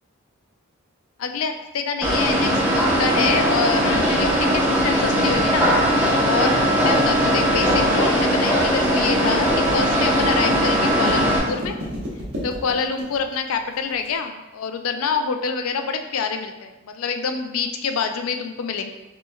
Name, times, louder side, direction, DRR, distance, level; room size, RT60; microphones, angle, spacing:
voice 1, 1.2-5.7 6.2-6.5 6.8-11.8 12.4-18.9, left 5 dB, 85° left, 6 dB, 0.4 m, -26 dB
sound 1, 2.0-11.4, equal, 10° right, 0.9 m, -19 dB
sound 2, 2.5-14.1, left 1 dB, 75° right, 1.2 m, -33 dB
5.9 x 3.2 x 2.3 m, 1.1 s
head